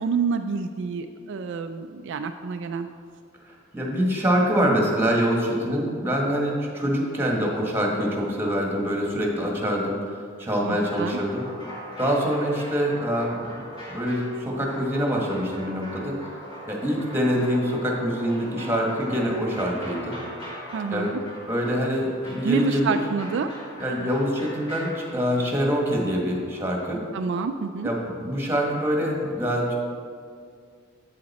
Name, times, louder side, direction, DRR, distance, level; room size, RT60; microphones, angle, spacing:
voice 1, 0.0-2.9 10.6-11.2 20.7-21.2 22.4-23.5 27.1-27.9, right 5 dB, 60° right, 7 dB, 0.3 m, -28 dB
voice 2, 3.4-11.4 12.0-13.6 13.9-16.1 16.7-20.2 20.9-21.1 21.5-23.0 23.8-27.0 27.8-29.7, equal, 10° right, -1 dB, 1.4 m, -25 dB
sound 1, 10.6-27.3 28.6-28.9, equal, 20° left, 1.9 m, -41 dB
8.0 x 7.6 x 4.2 m, 2.2 s
head